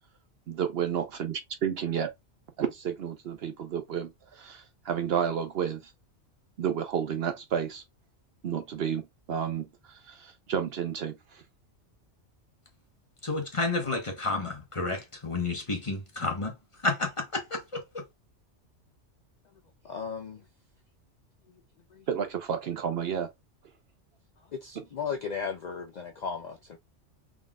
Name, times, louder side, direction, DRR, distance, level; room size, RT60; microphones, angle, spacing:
voice 1, 0.5-2.1 2.6-5.9 6.6-7.8 8.4-11.4 22.1-23.3, right 8 dB, 60° right, 0.8 m, -31 dB
voice 2, 13.2-16.5 16.8-18.0, left 3 dB, 30° left, 0.9 m, -31 dB
voice 3, 19.8-20.4 21.9-22.0 24.5-26.8, left 6 dB, 60° left, 0.4 m, -35 dB
3.7 x 3.7 x 2.3 m
omnidirectional pair, 1.3 m